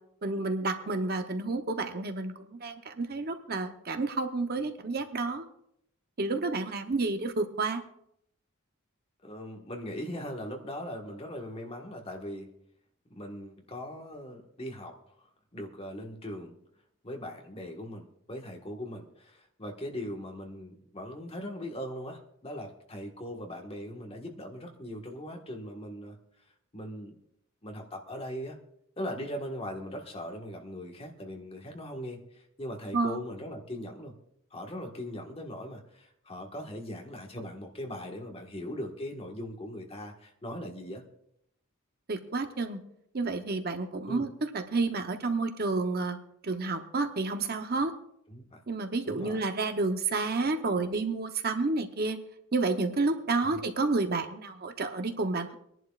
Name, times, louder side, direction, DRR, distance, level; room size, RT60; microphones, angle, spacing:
voice 1, 0.2-5.5 6.2-7.8 32.9-33.2 42.1-42.8 43.1-44.3 44.5-46.2 46.4-47.9 48.7-52.2 52.5-55.5, right 3 dB, 45° right, 6 dB, 0.8 m, -30 dB
voice 2, 9.2-12.5 13.1-16.5 17.0-26.2 26.7-27.2 27.6-28.6 29.0-34.1 34.5-41.0 44.1-44.3 48.3-48.6 49.0-49.4 53.5-53.6, equal, 30° left, 1 dB, 1.5 m, -40 dB
25.0 x 11.0 x 2.4 m, 0.73 s
head